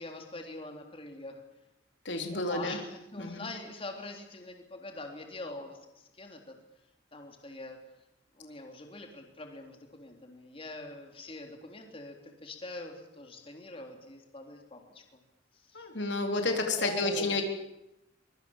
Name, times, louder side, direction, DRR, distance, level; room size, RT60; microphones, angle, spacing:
voice 1, 0.0-1.4 2.3-6.6 7.1-7.8 8.3-15.2 15.5-15.9 16.8-17.4, left 2 dB, 30° left, 3 dB, 3.6 m, -44 dB
voice 2, 2.1-2.8 3.2-3.4 15.7-17.4, left 2 dB, 75° left, 4 dB, 3.8 m, -30 dB
24.5 x 23.5 x 7.4 m, 0.88 s
head